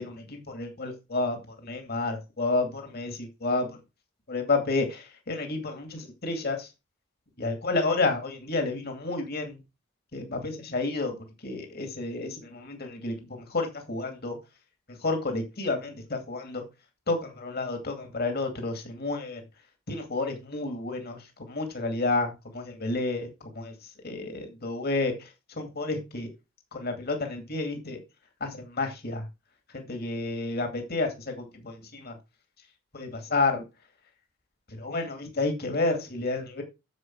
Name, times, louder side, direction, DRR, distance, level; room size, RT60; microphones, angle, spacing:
voice 1, 0.0-3.8 4.3-6.7 7.4-9.6 10.1-11.2 11.4-14.4 14.9-16.6 17.1-19.4 19.9-23.7 24.0-25.3 25.6-26.3 26.7-28.0 28.4-29.2 29.7-32.2 32.9-33.6 34.7-36.6, left 3 dB, 50° left, 5 dB, 2.4 m, -30 dB
9.8 x 7.2 x 4.6 m, 0.26 s
head